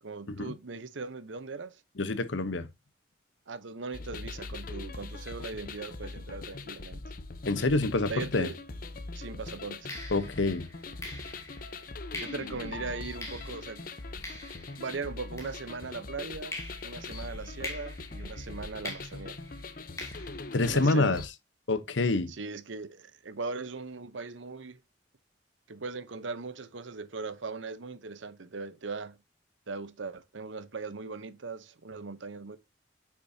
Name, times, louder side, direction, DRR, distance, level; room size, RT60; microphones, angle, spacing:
voice 1, 0.0-1.8 3.5-7.0 8.1-8.5 9.1-9.9 12.2-13.8 14.8-16.5 16.8-19.4 20.7-21.2 22.3-24.8 25.7-29.2 29.7-32.6, right 4 dB, 85° right, 0.8 m, -39 dB
voice 2, 2.0-2.7 7.5-8.5 10.1-10.7 20.5-21.2 21.7-22.3, left 2 dB, 80° left, 0.9 m, -27 dB
sound 1, 3.9-21.3, left 3 dB, 50° left, 0.7 m, -41 dB
sound 2, 8.9-9.0 9.9-16.1 16.5-21.2, left 2 dB, 15° left, 2.5 m, -45 dB
8.3 x 6.2 x 2.7 m
head